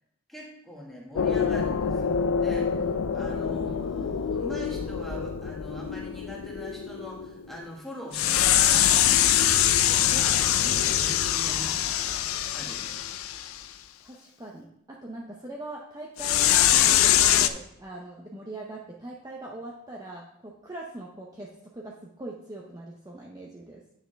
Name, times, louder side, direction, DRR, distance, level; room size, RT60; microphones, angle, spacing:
voice 1, 0.3-12.1 12.5-13.0, equal, ahead, -3 dB, 1.6 m, -42 dB
sound 1, 1.2-7.6 8.1-13.6 16.2-17.5, left 10 dB, 80° left, 0.4 m, -24 dB
voice 2, 14.0-23.9, right 1 dB, 15° right, -2 dB, 0.7 m, -41 dB
9.5 x 6.6 x 3.4 m, 0.75 s
head